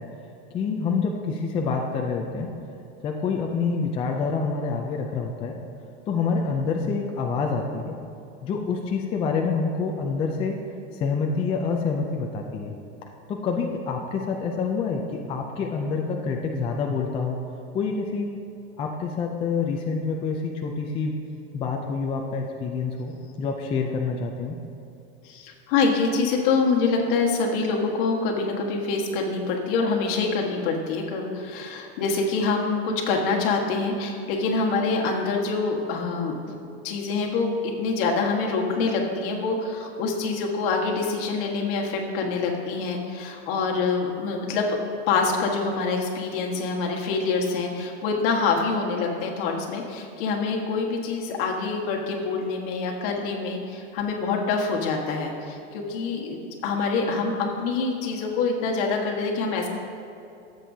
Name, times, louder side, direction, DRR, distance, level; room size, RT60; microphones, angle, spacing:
voice 1, 0.5-2.5 3.0-5.6 6.1-7.9 8.4-10.6 11.0-12.7 13.3-17.4 17.7-18.4 18.8-21.1 21.5-23.1 23.4-24.6, left 5 dB, 15° left, 1 dB, 0.4 m, -27 dB
voice 2, 25.2-36.6 36.8-44.8 45.1-59.7, left 4 dB, 55° left, 0 dB, 1.5 m, -25 dB
14.5 x 7.7 x 2.7 m, 2.8 s
supercardioid pair, 160°, 33 cm